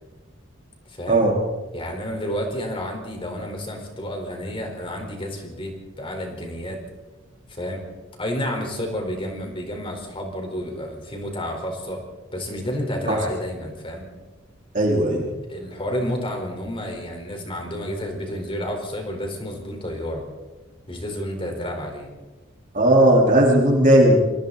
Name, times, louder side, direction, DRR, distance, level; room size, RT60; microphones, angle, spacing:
voice 1, 0.9-1.3 1.7-6.8 7.5-7.8 8.2-12.0 12.3-14.1 15.5-20.2 20.9-22.1, equal, 25° left, 2 dB, 4.5 m, -30 dB
voice 2, 14.7-15.3 22.7-24.2, right 1 dB, 40° right, -2 dB, 4.2 m, -16 dB
27.0 x 24.5 x 4.2 m, 1.2 s
head